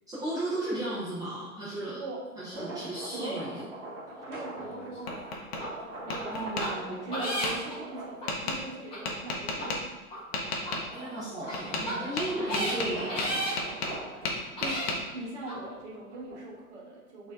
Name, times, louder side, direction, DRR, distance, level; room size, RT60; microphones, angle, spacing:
voice 1, 0.1-2.0 2.4-3.6 6.3-7.1 10.9-13.7, right 1 dB, 10° right, -11 dB, 0.6 m, -35 dB
sound 1, 2.4-9.0 9.5-16.7, right 1 dB, 30° right, 1.1 m, -43 dB
voice 2, 2.5-3.4 4.2-9.9 14.6-17.3, right 2 dB, 50° right, -2 dB, 1.1 m, -41 dB
Tap, 4.6-5.6 6.1-6.7 7.4-7.5 8.3-8.6 9.0-9.8 10.3-10.8 11.5-11.9 12.2-14.0 14.2-15.0, left 3 dB, 45° left, 0.7 m, -32 dB
sound 2, 5.6-5.7 6.1-6.2 6.6-6.7 7.1-7.7 8.2-8.3 8.9-9.0 9.5-9.7 10.1-10.2 10.6-10.7 11.4-11.5 11.8-11.9 12.4-12.7 13.1-13.5 14.1-14.2 14.6-14.9 15.5-15.6, equal, 10° left, 0.9 m, -33 dB
4.1 x 2.7 x 2.4 m, 1.2 s
figure-of-eight pair, 110°, 45 cm